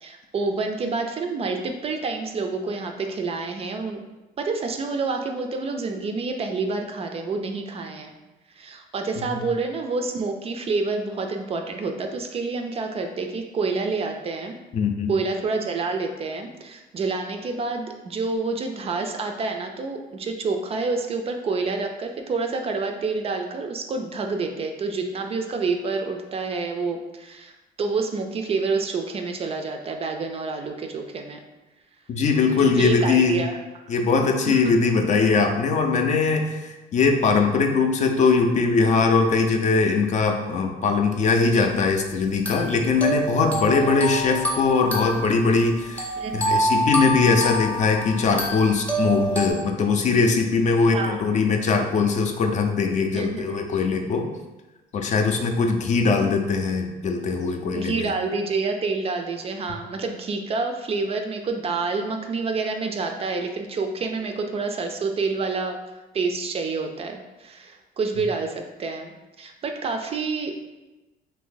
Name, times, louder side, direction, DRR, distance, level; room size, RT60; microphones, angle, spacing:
voice 1, 0.0-4.0 4.4-8.1 8.6-14.6 15.1-27.5 27.8-31.4 32.6-33.6 34.2-34.7 41.5-41.7 46.2-46.7 50.9-51.2 53.1-53.6 57.7-65.8 66.1-70.6, right 4 dB, 35° right, 4 dB, 0.4 m, -28 dB
voice 2, 14.7-15.1 32.1-33.4 33.9-54.3 54.9-58.1, left 4 dB, 45° left, 4 dB, 0.4 m, -21 dB
sound 1, 41.5-41.6 42.5-49.5, right 1 dB, 10° left, 0.7 m, -27 dB
2.7 x 2.6 x 3.7 m, 1.1 s
cardioid pair, 110°, 17 cm